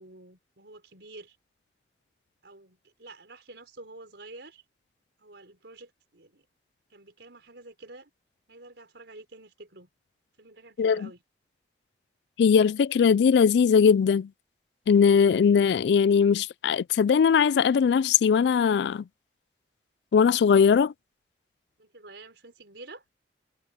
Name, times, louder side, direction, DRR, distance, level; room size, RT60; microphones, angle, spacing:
voice 1, 0.0-1.4 2.4-4.6 5.2-6.5 6.9-8.1 8.5-9.9 10.4-11.2 21.8-23.0, right 2 dB, 80° right, 4.2 m, -48 dB
voice 2, 10.8-11.1 12.4-14.3 14.9-19.0 20.1-20.9, left 6 dB, 75° left, 0.3 m, -20 dB
head